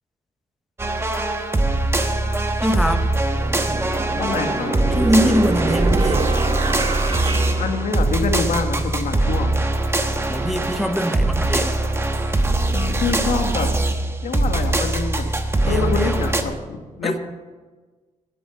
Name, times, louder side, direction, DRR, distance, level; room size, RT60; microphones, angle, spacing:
sound 1, 0.8-16.4, right 2 dB, 20° right, 1.1 m, -22 dB
voice 1, 2.6-3.2 4.9-6.3 10.3-11.7 15.6-16.3 17.0-17.2, equal, ahead, 7 dB, 0.8 m, -23 dB
sound 2, 2.6-2.7 3.3-8.5, right 3 dB, 35° right, 1.2 m, -27 dB
voice 2, 4.1-4.8 7.3-9.6 12.7-13.7 14.2-15.3 15.6-17.2, left 5 dB, 90° left, 4 dB, 1.7 m, -26 dB
12.5 x 10.5 x 5.9 m, 1.3 s
wide cardioid pair, 125°, 13 cm